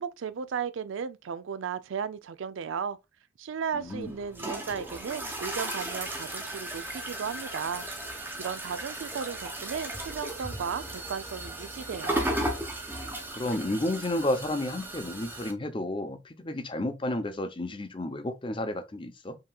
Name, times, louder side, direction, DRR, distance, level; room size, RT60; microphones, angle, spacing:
voice 1, 0.0-3.0 3.4-7.9 8.4-12.3, right 6 dB, 90° right, 0.4 m, -35 dB
voice 2, 3.7-4.1 13.3-19.4, left 1 dB, 25° left, 0.6 m, -31 dB
sound 1, 3.8-15.5, right 1 dB, 10° right, 0.8 m, -36 dB
5.7 x 2.9 x 2.2 m
head